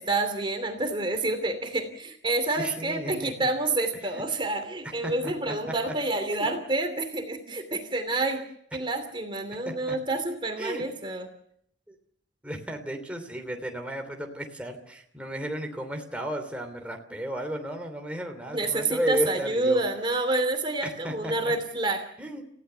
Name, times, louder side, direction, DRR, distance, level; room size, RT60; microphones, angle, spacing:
voice 1, 0.0-8.5 8.7-11.3 18.5-22.0, right 2 dB, 30° right, 6 dB, 2.8 m, -28 dB
voice 2, 2.6-3.5 4.1-4.2 4.8-5.5 5.9-6.0 6.4-6.5 9.9-10.0 10.6-10.8 11.9-12.0 12.4-19.8 20.8-21.5 22.2-22.4, equal, 5° right, 2 dB, 3.0 m, -34 dB
30.0 x 16.0 x 6.9 m, 0.70 s
head